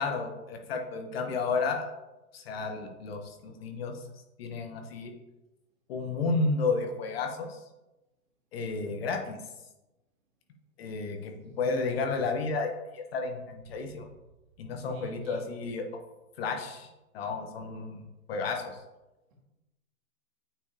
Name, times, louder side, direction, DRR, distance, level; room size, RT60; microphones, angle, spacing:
voice 1, 0.0-1.9 2.3-4.0 4.4-5.1 5.9-7.6 8.5-9.4 10.8-12.7 12.9-14.1 14.6-15.8 16.4-16.9 17.1-18.0 18.3-18.8, left 4 dB, 40° left, 4 dB, 0.8 m, -32 dB
voice 2, 11.4-11.7 14.7-15.4 19.3-19.4, equal, 35° right, -2 dB, 1.8 m, -49 dB
8.9 x 4.5 x 2.8 m, 1.0 s
hypercardioid pair, 130°, 44 cm